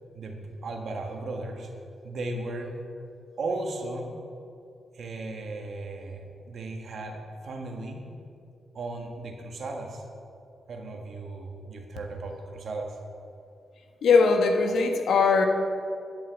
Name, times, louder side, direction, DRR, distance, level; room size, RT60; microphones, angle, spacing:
voice 1, 0.1-1.7 2.0-2.7 3.4-4.1 4.9-8.0 8.7-10.0 10.7-13.0, right 2 dB, 65° right, 3 dB, 1.5 m, -36 dB
voice 2, 14.0-15.5, left 4 dB, 85° left, 5 dB, 1.2 m, -20 dB
11.0 x 5.6 x 8.1 m, 2.4 s
cardioid pair, 95°, 0 cm